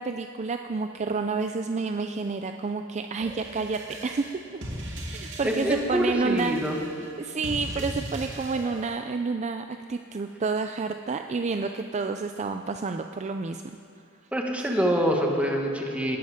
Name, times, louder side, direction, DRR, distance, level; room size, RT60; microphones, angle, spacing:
voice 1, 0.0-4.3 5.1-6.6 7.2-13.6 14.6-14.7, right 4 dB, 35° right, 6 dB, 0.4 m, -29 dB
sound 1, 3.2-8.8, right 1 dB, 60° right, 2.6 m, -38 dB
voice 2, 5.4-6.7 14.3-16.2, equal, 5° right, 0 dB, 1.7 m, -25 dB
19.0 x 12.5 x 5.1 m, 2.5 s
head